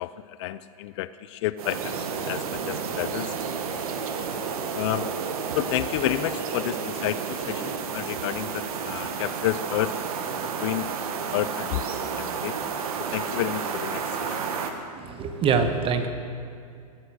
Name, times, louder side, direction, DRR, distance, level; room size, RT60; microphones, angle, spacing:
voice 1, 0.0-3.3 3.7-3.9 4.7-5.2 5.5-10.0 10.6-10.9 11.3-11.8 12.2-12.5 13.1-14.4, left 15 dB, 50° left, 15 dB, 0.4 m, -30 dB
sound 1, 1.6-14.7, right 6 dB, 65° right, 1.5 m, -31 dB
voice 2, 15.0-16.1, right 5 dB, 25° right, 7 dB, 1.3 m, -24 dB
18.5 x 8.2 x 6.5 m, 2.3 s
hypercardioid pair, 120°, 20 cm